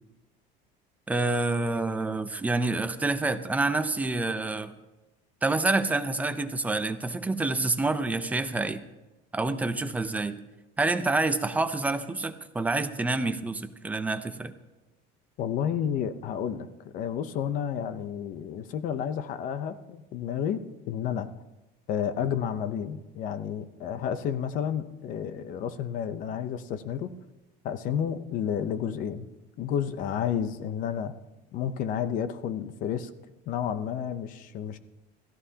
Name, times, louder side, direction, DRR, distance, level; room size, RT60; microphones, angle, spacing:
voice 1, 1.1-4.7 5.4-8.8 9.3-10.4 10.8-14.5, right 2 dB, 5° right, 9 dB, 0.5 m, -27 dB
voice 2, 15.4-21.3 21.9-27.1 27.6-29.3 29.6-31.1 31.5-33.1 33.5-34.8, left 8 dB, 40° left, 12 dB, 0.7 m, -31 dB
28.0 x 14.0 x 2.8 m, 1.1 s
cardioid pair, 180°, 20 cm